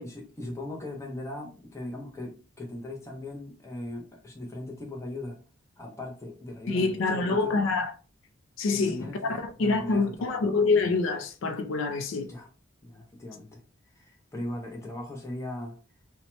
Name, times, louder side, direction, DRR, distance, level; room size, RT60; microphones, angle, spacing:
voice 1, 0.0-5.4 5.8-7.6 8.7-10.4 12.3-12.5 12.8-13.6 13.9-15.8, left 1 dB, 15° left, 0.6 m, -39 dB
voice 2, 6.7-7.9 8.6-12.3, left 3 dB, 70° left, 0.4 m, -26 dB
2.8 x 2.1 x 2.9 m
head